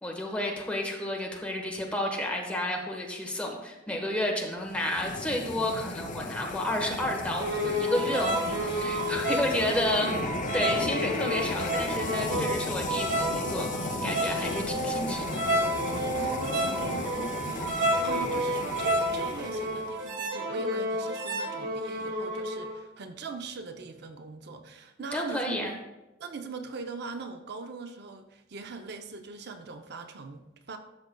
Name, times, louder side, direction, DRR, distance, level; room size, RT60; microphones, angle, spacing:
voice 1, 0.0-10.2 10.5-15.4 25.1-25.7, left 1 dB, 5° left, 0 dB, 1.1 m, -31 dB
sound 1, 4.6-20.0, left 3 dB, 45° left, 0.5 m, -35 dB
sound 2, 7.4-22.8, right 1 dB, 85° right, 1.3 m, -30 dB
voice 2, 9.6-10.1 16.1-25.8 26.2-30.8, right 4 dB, 60° right, 7 dB, 0.6 m, -41 dB
12.0 x 6.5 x 2.2 m, 1.0 s
head